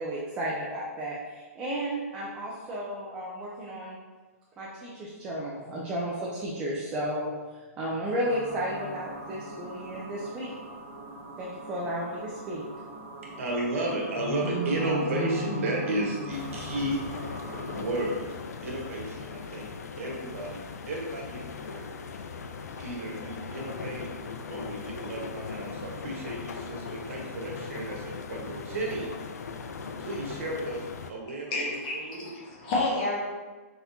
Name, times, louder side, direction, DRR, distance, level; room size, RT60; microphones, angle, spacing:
voice 1, 0.0-4.0 4.6-10.5 11.4-12.6, equal, 10° right, -6 dB, 0.4 m, -33 dB
sound 1, 8.2-17.8, right 1 dB, 40° right, 0.9 m, -38 dB
voice 2, 13.4-17.0 17.6-18.3 18.6-19.7 20.0-21.8 22.8-24.1 24.5-29.1 30.0-32.2, right 1 dB, 55° right, -2 dB, 1.3 m, -33 dB
sound 2, 16.3-31.1, left 5 dB, 85° left, 0.4 m, -39 dB
voice 3, 31.5-33.2, left 2 dB, 30° left, -3 dB, 1.0 m, -29 dB
4.2 x 4.1 x 2.7 m, 1.3 s
hypercardioid pair, 170°, 9 cm